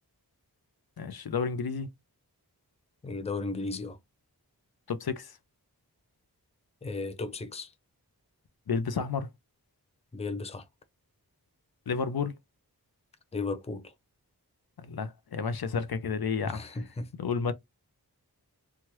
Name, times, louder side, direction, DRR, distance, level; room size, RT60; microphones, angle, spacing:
voice 1, 1.0-1.9 4.9-5.3 8.7-9.3 11.9-12.3 14.8-16.8 17.2-17.5, left 5 dB, 70° left, 0.5 m, -31 dB
voice 2, 3.0-4.0 6.8-7.7 10.1-10.6 13.3-13.9 16.4-17.1, left 3 dB, 15° left, 0.5 m, -35 dB
2.9 x 2.3 x 3.1 m
wide cardioid pair, 45°, 39 cm